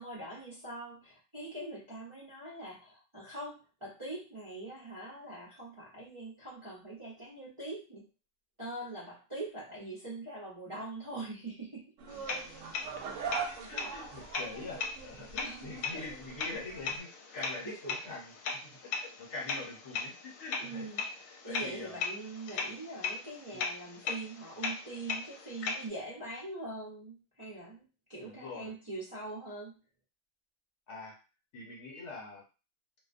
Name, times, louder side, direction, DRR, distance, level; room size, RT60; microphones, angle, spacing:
voice 1, 0.0-8.0 8.6-11.9 15.4-16.1 17.6-17.9 20.6-21.0 21.4-29.8, right 2 dB, 30° right, -8 dB, 0.6 m, -43 dB
sound 1, 12.0-17.0, right 6 dB, 75° right, 0.9 m, -42 dB
sound 2, 12.1-25.9, left 4 dB, 80° left, 1.0 m, -39 dB
voice 2, 13.4-18.3 18.6-20.9 21.4-22.0 23.5-23.6 28.2-28.7 30.9-31.1 31.5-32.4, left 3 dB, 65° left, -3 dB, 1.2 m, -44 dB
2.4 x 2.1 x 2.5 m, 0.32 s
omnidirectional pair, 1.3 m